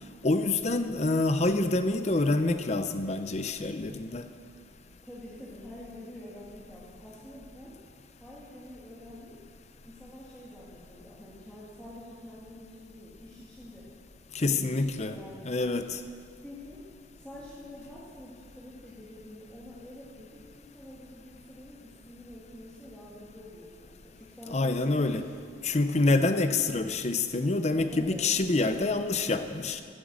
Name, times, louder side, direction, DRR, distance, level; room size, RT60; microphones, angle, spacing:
voice 1, 0.2-4.3 14.3-15.2 15.4-16.0 24.5-25.3 25.6-29.8, left 2 dB, 35° left, 9 dB, 0.6 m, -27 dB
voice 2, 5.0-7.8 8.2-9.4 9.8-13.9 14.4-15.9 16.4-16.9 17.2-25.2 25.5-26.3 27.9-28.2, left 1 dB, 5° left, -9 dB, 2.1 m, -47 dB
15.5 x 9.1 x 7.6 m, 2.1 s
head